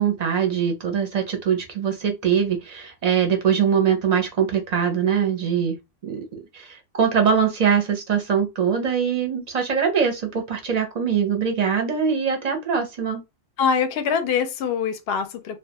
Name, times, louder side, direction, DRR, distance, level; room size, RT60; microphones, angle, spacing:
voice 1, 0.0-5.8 6.0-6.2 6.5-13.2, right 7 dB, 45° right, 0.5 m, -22 dB
voice 2, 13.6-15.6, left 6 dB, 65° left, 0.7 m, -23 dB
2.3 x 2.2 x 2.7 m
omnidirectional pair, 1.3 m